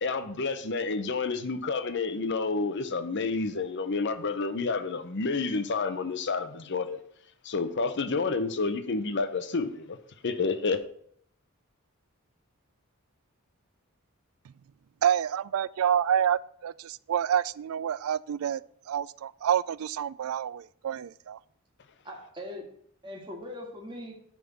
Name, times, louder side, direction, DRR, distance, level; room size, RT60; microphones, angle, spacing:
voice 1, 0.0-7.0 7.4-10.0 10.2-10.8, left 4 dB, 55° left, 0.7 m, -29 dB
voice 2, 15.0-18.6 18.9-21.4, right 9 dB, 75° right, 0.3 m, -28 dB
voice 3, 22.0-24.1, left 1 dB, 20° right, 1.7 m, -41 dB
10.0 x 3.7 x 7.0 m
head